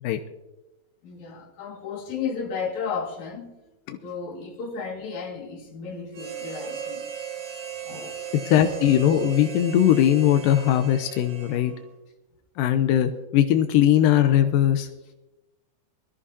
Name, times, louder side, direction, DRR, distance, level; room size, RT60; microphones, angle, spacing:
voice 1, 1.0-3.6 4.0-7.1 7.8-8.3, left 5 dB, 55° left, 3.0 m, -33 dB
Harmonica, 6.1-11.9, right 7 dB, 60° right, 2.2 m, -37 dB
voice 2, 8.5-11.7 12.6-14.9, left 11 dB, 80° left, 2.0 m, -20 dB
22.5 x 13.5 x 2.8 m
omnidirectional pair, 4.6 m